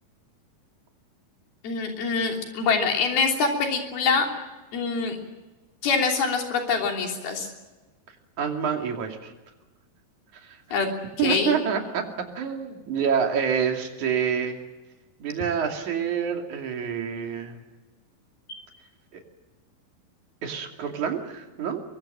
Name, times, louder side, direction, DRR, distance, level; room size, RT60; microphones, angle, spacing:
voice 1, 1.6-4.3 4.7-5.2 5.8-7.5 10.7-10.9 11.2-11.6 18.5-18.6, left 5 dB, 85° left, 2 dB, 5.1 m, -24 dB
voice 2, 8.4-9.3 10.4-10.6 11.2-14.6 15.2-17.6 19.1-19.2 20.4-21.8, right 7 dB, 55° right, 3 dB, 3.9 m, -27 dB
23.0 x 23.0 x 7.6 m, 1.2 s
omnidirectional pair, 4.3 m